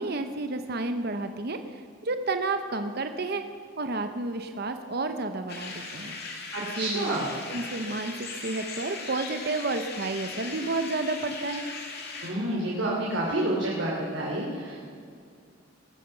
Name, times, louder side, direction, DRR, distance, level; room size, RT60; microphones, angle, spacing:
voice 1, 0.0-3.4 3.8-6.2 6.6-7.1 7.5-11.7, right 3 dB, 50° right, 8 dB, 0.8 m, -31 dB
sound 1, 5.5-12.3, left 4 dB, 55° left, 2.5 m, -38 dB
voice 2, 6.5-7.3 12.2-14.8, right 1 dB, 70° right, -5 dB, 3.0 m, -29 dB
20.0 x 9.3 x 7.0 m, 2.3 s
head